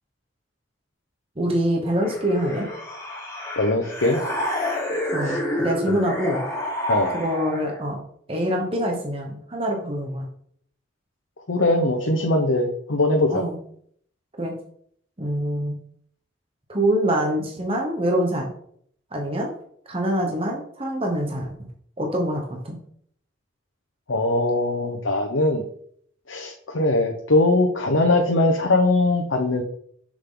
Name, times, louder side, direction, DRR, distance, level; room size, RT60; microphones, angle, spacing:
voice 1, 1.4-2.7 5.1-6.4 7.1-8.0 8.3-10.3 13.3-13.6 14.4-14.5 15.2-15.8 16.7-18.5 19.1-19.5 19.9-21.5 22.0-22.8, right 1 dB, 30° right, 1 dB, 1.1 m, -25 dB
sound 1, 2.0-7.8, left 1 dB, 20° left, 3.3 m, -29 dB
voice 2, 3.6-4.2 5.2-5.4 6.9-7.1 11.5-13.4 24.1-25.6 26.3-29.6, left 2 dB, 90° left, 2 dB, 0.9 m, -21 dB
6.8 x 6.4 x 3.8 m, 0.63 s
head